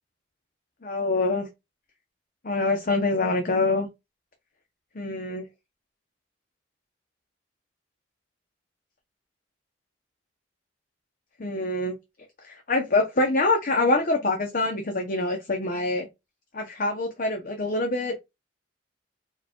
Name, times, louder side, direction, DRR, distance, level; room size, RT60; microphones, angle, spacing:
voice 1, 0.8-1.5 2.4-3.9 4.9-5.5 11.4-12.0 12.4-16.1 16.5-18.1, left 2 dB, 50° left, 0.8 m, -25 dB
4.7 x 2.4 x 4.3 m
head